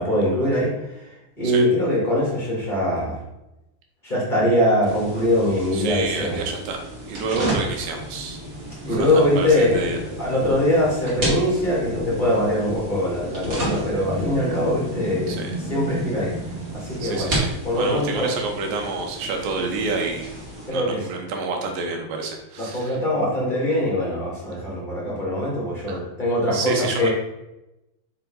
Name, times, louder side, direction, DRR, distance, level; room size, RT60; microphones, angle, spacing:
voice 1, 0.0-3.2 4.0-6.4 8.8-9.8 10.2-15.4 15.7-16.3 16.7-17.4 17.6-18.3 20.7-21.0 22.6-27.1, left 1 dB, 20° left, -6 dB, 1.5 m, -22 dB
sound 1, 4.8-20.7, right 1 dB, 35° right, 1.4 m, -32 dB
voice 2, 5.7-6.8 7.1-8.4 8.9-10.0 15.3-15.6 17.0-20.3 20.7-23.0 25.9-26.0 26.5-27.1, right 3 dB, 70° right, 2 dB, 2.3 m, -28 dB
sound 2, 8.9-14.9, left 2 dB, 60° left, 2.3 m, -33 dB
6.0 x 5.6 x 3.9 m, 0.92 s
omnidirectional pair, 4.9 m